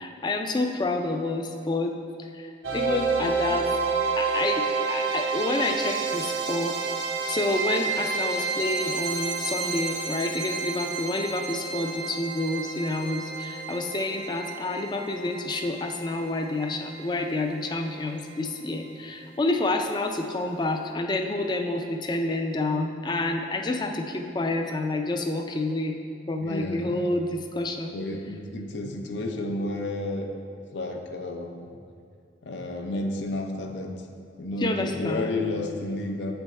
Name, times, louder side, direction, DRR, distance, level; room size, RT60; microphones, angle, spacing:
voice 1, 0.0-1.9 2.3-3.7 4.2-6.8 7.3-26.0 26.3-27.9 34.6-35.4, left 2 dB, 25° left, 5 dB, 0.3 m, -29 dB
sound 1, 2.6-17.6, right 4 dB, 85° right, 0.6 m, -30 dB
voice 2, 26.4-27.2 27.9-30.3 30.7-31.7 32.4-33.9 34.4-36.3, left 2 dB, 80° left, 3 dB, 0.6 m, -31 dB
8.2 x 3.4 x 4.1 m, 2.3 s
head